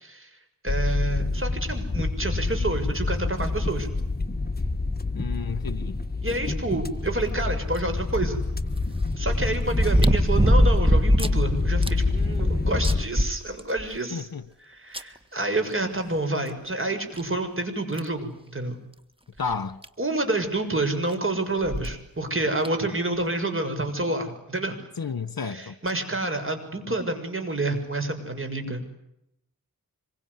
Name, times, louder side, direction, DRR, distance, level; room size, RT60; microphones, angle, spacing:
voice 1, 0.6-3.9 6.2-8.4 9.2-14.3 14.6-18.8 20.0-24.7 25.5-28.9, right 2 dB, 35° right, 6.7 m, -28 dB
sound 1, 0.7-13.0, left 3 dB, 25° left, 1.7 m, -27 dB
voice 2, 5.1-6.0 14.1-14.5 19.4-19.8 25.0-25.8, left 5 dB, 70° left, 1.8 m, -32 dB
sound 2, 7.8-7.9 9.7-11.4 11.8-11.9 12.4-12.5 12.8-14.0 14.9-15.0 16.5-16.6 17.2-17.3 18.0-18.2 19.5-19.6 19.8-19.9 21.6-21.9 22.6-22.7, equal, 15° right, 1.8 m, -21 dB
25.5 x 23.5 x 9.9 m
wide cardioid pair, 60°, 36 cm